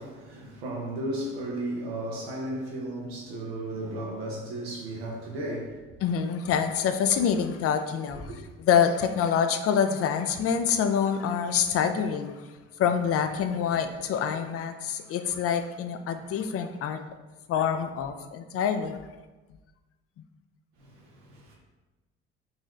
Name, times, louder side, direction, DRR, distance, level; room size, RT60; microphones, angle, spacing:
voice 1, 0.0-5.8 20.8-21.5, right 1 dB, 90° right, 0.8 m, -34 dB
voice 2, 6.0-8.2 8.6-12.3 12.8-17.0 17.5-19.0, left 7 dB, 50° left, 0.4 m, -26 dB
4.0 x 3.0 x 2.4 m
hypercardioid pair, 50°, 31 cm